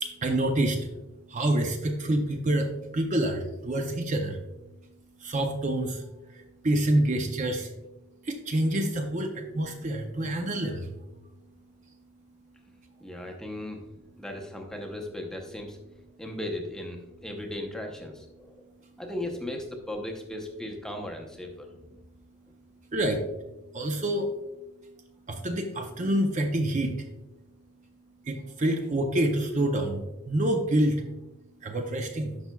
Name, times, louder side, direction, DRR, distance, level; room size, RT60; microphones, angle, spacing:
voice 1, 0.0-0.9 1.3-4.4 5.2-7.7 8.2-10.9 22.9-23.2 23.7-24.3 25.3-27.0 28.3-31.0 31.6-32.4, right 1 dB, 35° right, 4 dB, 0.5 m, -27 dB
voice 2, 13.0-13.8 14.2-15.8 16.2-18.6 19.0-21.7, left 1 dB, 5° left, 2 dB, 0.7 m, -37 dB
10.5 x 5.6 x 2.2 m, 0.99 s
head